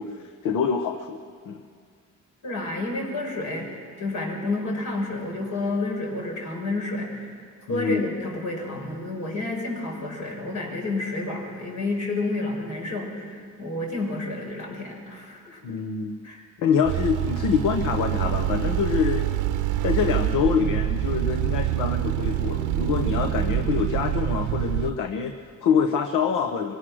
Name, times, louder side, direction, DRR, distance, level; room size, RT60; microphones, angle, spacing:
voice 1, 0.0-1.6 7.7-8.1 15.6-16.1 16.6-19.3 19.8-26.8, left 6 dB, 90° left, 6 dB, 1.0 m, -25 dB
voice 2, 2.4-7.4 7.7-15.6 16.2-16.4, left 2 dB, 75° left, -1 dB, 5.9 m, -30 dB
sound 1, 16.8-24.9, right 12 dB, 90° right, 0.7 m, -26 dB
24.0 x 17.5 x 6.3 m, 2.1 s
cardioid pair, 90°, 30 cm